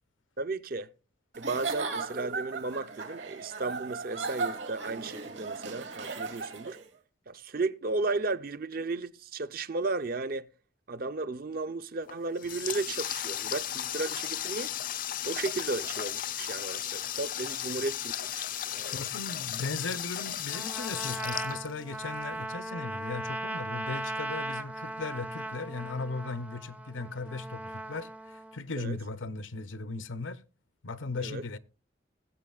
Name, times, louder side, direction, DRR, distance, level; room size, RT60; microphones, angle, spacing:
voice 1, 0.4-0.9 1.4-6.8 7.3-10.5 10.9-14.7 15.2-18.5 18.7-19.0 28.8-29.0 31.2-31.4, right 3 dB, 50° right, 0.6 m, -34 dB
Giggle / Chuckle chortle, 1.3-6.9, right 4 dB, 70° right, 2.6 m, -36 dB
Water tap faucet, 12.0-22.2, left 11 dB, 45° left, 0.4 m, -35 dB
voice 2, 18.9-30.4 30.8-31.6, left 3 dB, 90° left, 0.8 m, -37 dB
Trumpet, 20.5-28.6, right 1 dB, 10° right, 0.5 m, -38 dB
20.5 x 7.7 x 2.4 m
head